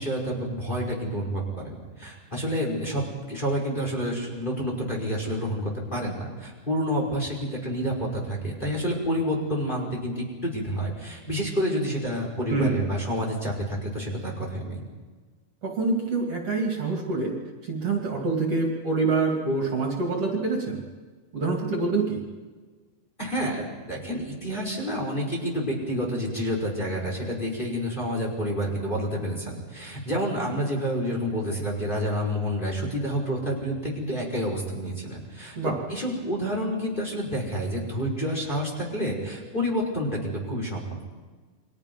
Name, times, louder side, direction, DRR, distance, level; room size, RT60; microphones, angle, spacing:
voice 1, 0.0-14.8 23.2-35.6 35.9-40.9, equal, 15° left, -1 dB, 5.2 m, -29 dB
voice 2, 12.5-12.8 15.6-17.4 17.6-20.8 21.3-22.2 35.6-35.8, right 3 dB, 45° right, 0 dB, 3.8 m, -26 dB
30.0 x 24.0 x 5.5 m, 1.4 s
omnidirectional pair, 3.8 m